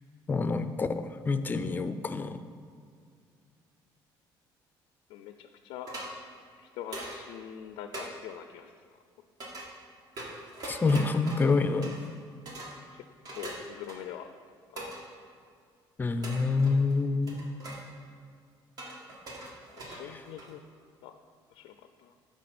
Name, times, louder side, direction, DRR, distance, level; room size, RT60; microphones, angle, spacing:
voice 1, 0.3-2.4 10.6-12.1 16.0-17.5 20.0-20.2, left 4 dB, 20° left, 10 dB, 0.4 m, -27 dB
voice 2, 5.1-5.9 6.6-8.7 12.9-13.0 13.3-14.3 14.8-14.9 19.7-20.6 21.0-21.2 21.5-22.1, left 10 dB, 85° left, 8 dB, 0.4 m, -44 dB
sound 1, 5.9-6.1 6.9-7.2 7.9-8.1 9.4-9.7 10.2-12.2 12.5-12.8 13.2-14.2 14.8-15.0 16.2-16.9 17.3-17.8 18.8-20.6, right 1 dB, 50° right, 1.7 m, -42 dB
11.5 x 4.8 x 4.2 m, 2.2 s
cardioid pair, 115°, 9 cm